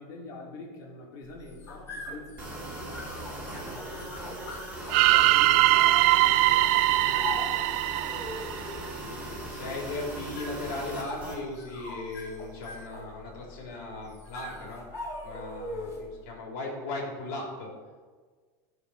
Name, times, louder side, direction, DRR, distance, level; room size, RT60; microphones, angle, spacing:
voice 1, 0.0-4.2 5.0-5.8 6.1-7.7, left 2 dB, 40° left, -2 dB, 3.0 m, -46 dB
sound 1, 1.2-16.2, left 2 dB, 25° left, 3.7 m, -42 dB
sound 2, 2.4-11.4, right 2 dB, 10° right, 2.7 m, -39 dB
sound 3, 4.9-9.0, right 17 dB, 50° right, 0.4 m, -22 dB
voice 2, 9.0-14.8 15.2-17.7, left 2 dB, 60° left, -2 dB, 3.5 m, -37 dB
15.0 x 5.0 x 6.4 m, 1.5 s
supercardioid pair, 150°, 10 cm